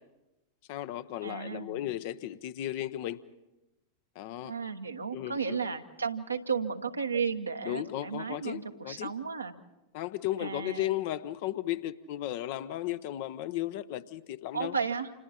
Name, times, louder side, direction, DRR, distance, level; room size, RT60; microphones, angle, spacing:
voice 1, 0.7-3.2 4.2-4.5 5.1-5.6 7.6-9.1 9.9-14.7, left 13 dB, 50° left, 13 dB, 0.8 m, -35 dB
voice 2, 1.2-1.8 4.4-9.5 10.4-10.9 14.5-15.1, right 5 dB, 80° right, 5 dB, 1.3 m, -34 dB
30.0 x 27.5 x 4.3 m, 1.0 s
figure-of-eight pair, 90°, 0 cm